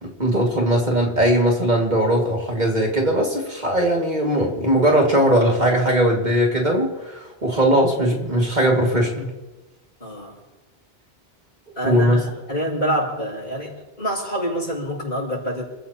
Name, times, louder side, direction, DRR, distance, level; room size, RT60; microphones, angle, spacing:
voice 1, 0.0-9.3 11.8-12.3, right 1 dB, 45° right, -1 dB, 2.5 m, -19 dB
voice 2, 10.0-10.4 11.8-15.6, equal, 55° left, -3 dB, 7.1 m, -26 dB
29.0 x 15.0 x 3.0 m, 1.1 s
omnidirectional pair, 1.1 m